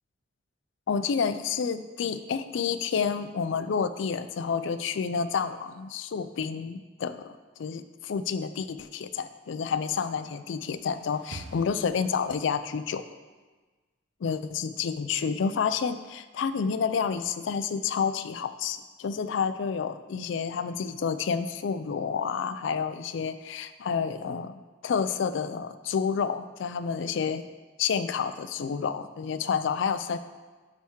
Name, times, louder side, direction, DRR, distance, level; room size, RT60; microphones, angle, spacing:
voice 1, 0.9-13.1 14.2-27.5 27.8-30.2, left 6 dB, 70° left, 12 dB, 0.3 m, -29 dB
sound 1, 10.5-12.7, right 3 dB, 60° right, 0.4 m, -47 dB
8.7 x 3.6 x 4.5 m, 1.3 s
head